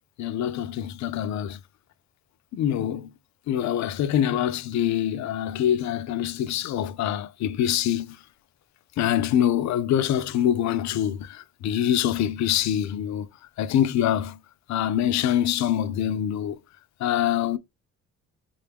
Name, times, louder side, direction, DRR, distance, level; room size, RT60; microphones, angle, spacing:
voice 1, 0.2-1.6 2.5-3.1 3.5-8.2 9.0-13.3 13.6-14.4 14.7-16.6 17.0-17.6, left 10 dB, 65° left, 0.5 m, -25 dB
3.7 x 2.3 x 3.4 m
cardioid pair, 90°, 30 cm